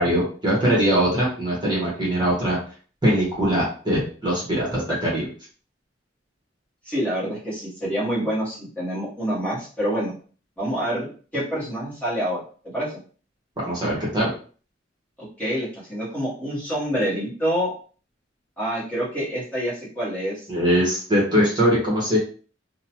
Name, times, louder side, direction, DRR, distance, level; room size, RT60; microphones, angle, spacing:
voice 1, 0.0-2.6 3.0-5.3 13.6-14.3 20.5-22.2, equal, 20° right, -6 dB, 1.1 m, -21 dB
voice 2, 6.8-10.1 10.6-12.4 12.7-13.0 15.4-17.7 18.6-20.5, equal, 10° left, -9 dB, 1.1 m, -27 dB
2.8 x 2.2 x 2.9 m, 0.41 s
head